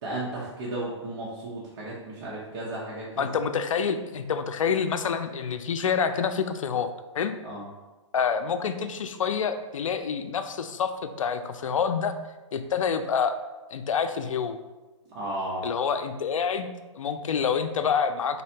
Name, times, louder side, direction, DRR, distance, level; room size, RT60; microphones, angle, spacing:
voice 1, 0.0-3.3 7.4-7.6 15.1-15.7, right 1 dB, 40° right, -6 dB, 0.9 m, -34 dB
voice 2, 3.2-6.9 7.1-7.4 8.1-12.2 12.5-13.3 13.7-14.6 15.6-16.7 16.9-18.4, left 6 dB, 85° left, 9 dB, 0.5 m, -27 dB
4.2 x 4.0 x 2.8 m, 1.1 s
hypercardioid pair, 150°, 16 cm